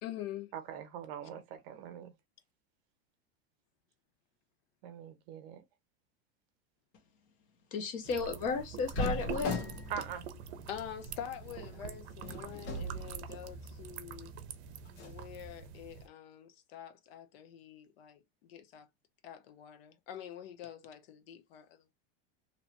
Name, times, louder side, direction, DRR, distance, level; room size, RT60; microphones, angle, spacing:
voice 1, 0.0-0.5 10.7-14.3 15.0-18.9 19.2-21.8, left 10 dB, 65° left, 0.7 m, -46 dB
voice 2, 0.5-2.1 4.8-5.6 9.9-10.2, right 8 dB, 45° right, 0.6 m, -42 dB
voice 3, 7.7-9.6, left 4 dB, 25° left, 0.5 m, -34 dB
sound 1, 8.0-16.1, right 7 dB, 90° right, 0.6 m, -46 dB
sound 2, 8.9-13.8 14.2-14.3 14.9-15.2, left 1 dB, 80° left, 1.3 m, -40 dB
2.8 x 2.1 x 2.8 m
supercardioid pair, 175°, 32 cm